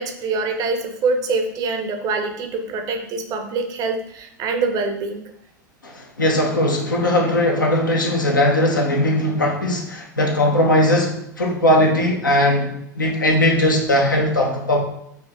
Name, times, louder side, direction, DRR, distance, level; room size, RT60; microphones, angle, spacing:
voice 1, 0.0-5.3, right 3 dB, 35° right, 6 dB, 0.6 m, -24 dB
voice 2, 5.8-14.8, left 1 dB, 80° left, 0 dB, 0.8 m, -19 dB
4.4 x 2.8 x 3.4 m, 0.76 s
figure-of-eight pair, 85°, 10 cm